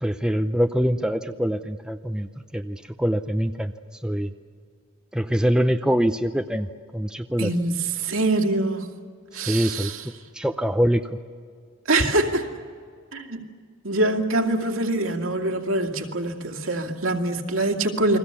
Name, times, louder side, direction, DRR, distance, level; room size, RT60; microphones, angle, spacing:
voice 1, 0.0-3.7 4.0-4.3 5.1-7.5 9.3-9.9 10.3-11.1, equal, 5° right, 7 dB, 0.6 m, -24 dB
voice 2, 7.4-8.9 9.3-10.0 11.9-12.5 13.1-13.4 13.8-18.2, right 2 dB, 75° right, 3 dB, 2.5 m, -24 dB
29.5 x 22.5 x 7.0 m, 2.1 s
head